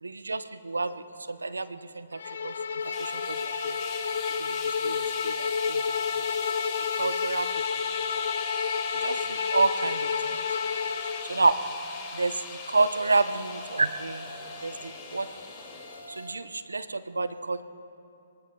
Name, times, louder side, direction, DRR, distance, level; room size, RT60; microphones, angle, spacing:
voice 1, 0.0-3.8 4.3-6.3 6.9-7.9 8.9-10.4 11.2-11.6 12.1-14.3 14.6-15.3 16.1-17.6, right 3 dB, 85° right, 12 dB, 0.7 m, -30 dB
Bowed string instrument, 2.2-11.3, left 6 dB, 60° left, 0.7 m, -30 dB
sound 1, 2.8-16.3, equal, 80° left, 3.0 m, -45 dB
sound 2, 2.9-16.3, left 6 dB, 25° left, 2.4 m, -40 dB
24.5 x 23.5 x 2.3 m, 2.8 s
figure-of-eight pair, 130°, 0 cm